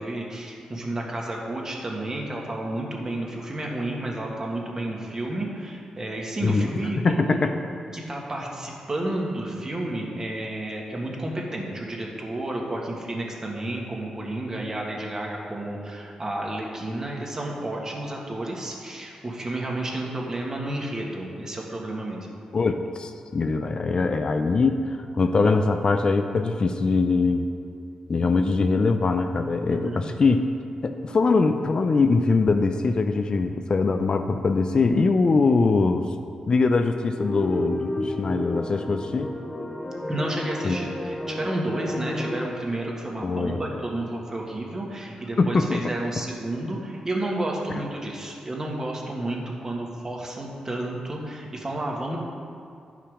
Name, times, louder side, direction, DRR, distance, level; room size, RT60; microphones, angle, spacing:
voice 1, 0.0-7.4 7.9-22.3 29.7-30.0 40.1-52.2, right 1 dB, 30° right, -1 dB, 1.7 m, -31 dB
voice 2, 7.0-7.5 22.5-27.5 28.1-30.4 30.8-36.1 36.5-39.3 40.6-40.8 43.2-43.6 45.4-45.9 47.7-47.8, left 4 dB, 45° left, 7 dB, 0.5 m, -22 dB
sound 1, 37.1-42.5, left 1 dB, 15° left, 0.9 m, -32 dB
10.5 x 5.8 x 4.9 m, 2.4 s
cardioid pair, 85°, 2 cm